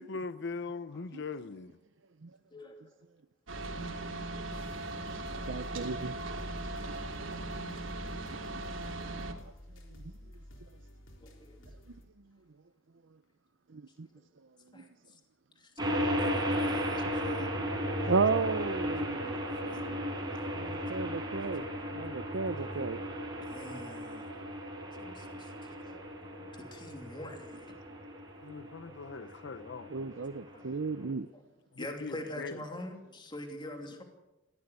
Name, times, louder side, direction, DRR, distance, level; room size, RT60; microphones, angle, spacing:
voice 1, 0.0-1.8 7.5-7.9 28.4-29.9 31.7-32.6, left 4 dB, 60° left, 0.7 m, -41 dB
voice 2, 2.5-3.0 5.7-6.2 11.2-11.7 14.7-15.2 15.5-15.7 16.2-17.5 20.3-20.7 21.0-21.1 22.1-22.2 23.4-24.3 24.9-27.8 28.9-29.6 30.1-30.2 30.5-30.8 31.3-31.4 31.8-34.0, left 1 dB, 25° left, 2.8 m, -46 dB
sound 1, 3.5-9.3, right 2 dB, 85° right, 3.1 m, -39 dB
sound 2, 4.5-12.1, equal, 80° left, 3.9 m, -51 dB
voice 3, 5.5-6.1 6.5-6.6 8.5-8.7 13.7-14.1 14.8-14.9 18.1-19.4 20.5-21.7 21.9-23.0 29.9-31.3, right 4 dB, 70° right, 0.7 m, -33 dB
sound 3, 15.8-31.1, equal, 20° right, 5.0 m, -35 dB
20.5 x 16.5 x 8.2 m
head